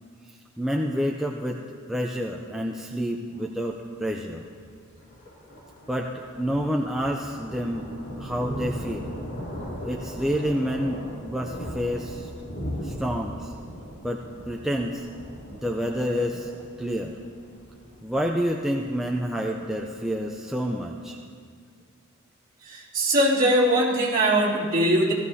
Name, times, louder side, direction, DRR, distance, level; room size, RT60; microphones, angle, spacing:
voice 1, 0.3-1.6 1.9-4.5 5.9-7.9 8.2-9.1 9.8-12.3 12.8-13.5 14.0-15.1 15.5-16.5 16.8-17.2 18.0-21.2, equal, ahead, 0 dB, 0.5 m, -28 dB
Thunder, 3.7-20.5, equal, 55° left, 2.9 m, -39 dB
voice 2, 22.6-25.1, right 1 dB, 40° right, -7 dB, 2.8 m, -21 dB
17.0 x 14.0 x 2.8 m, 2.1 s
head